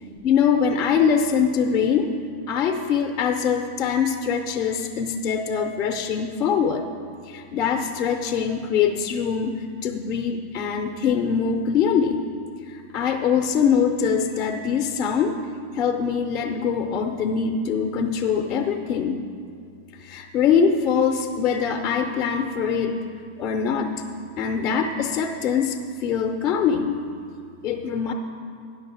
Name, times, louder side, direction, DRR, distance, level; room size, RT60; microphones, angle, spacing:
voice 1, 0.2-2.1 2.5-6.9 7.2-12.2 12.7-15.4 15.7-19.2 19.9-23.0 23.4-23.9 24.4-27.0 27.6-28.1, left 6 dB, 40° left, 5 dB, 0.6 m, -23 dB
10.5 x 6.5 x 5.9 m, 2.3 s
figure-of-eight pair, 90°, 0 cm